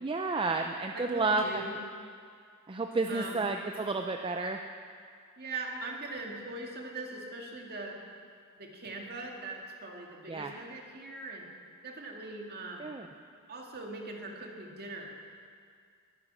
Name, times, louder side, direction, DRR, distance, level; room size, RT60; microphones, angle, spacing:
voice 1, 0.0-1.6 2.7-4.6 10.3-10.5 12.8-13.1, right 3 dB, 25° right, 4 dB, 0.5 m, -31 dB
voice 2, 0.9-1.8 3.1-3.4 5.4-8.0 8.6-11.5 11.8-12.9 13.5-15.2, right 2 dB, 45° right, 0 dB, 2.2 m, -41 dB
21.5 x 9.3 x 6.2 m, 2.2 s
head